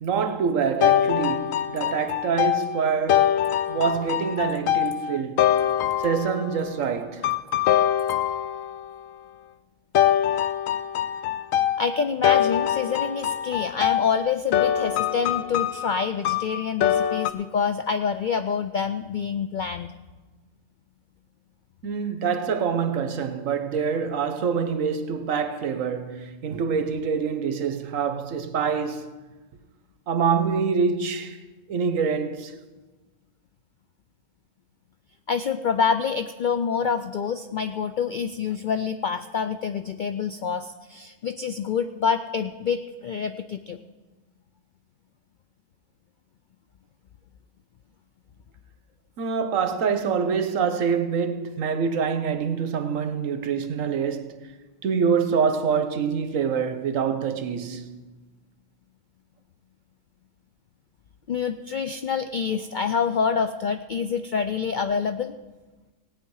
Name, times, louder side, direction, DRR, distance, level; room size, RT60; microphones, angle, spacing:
voice 1, 0.0-5.6 6.0-7.3 21.8-29.1 30.1-31.4 31.7-32.5 49.2-54.4 54.8-57.9, right 6 dB, 75° right, 1.3 m, -26 dB
sound 1, 0.8-6.6 7.2-8.9 9.9-17.3, left 10 dB, 85° left, 1.0 m, -24 dB
voice 2, 11.8-19.9 35.3-43.8 61.3-65.3, left 6 dB, 70° left, 0.4 m, -27 dB
17.5 x 9.1 x 4.7 m
omnidirectional pair, 1.4 m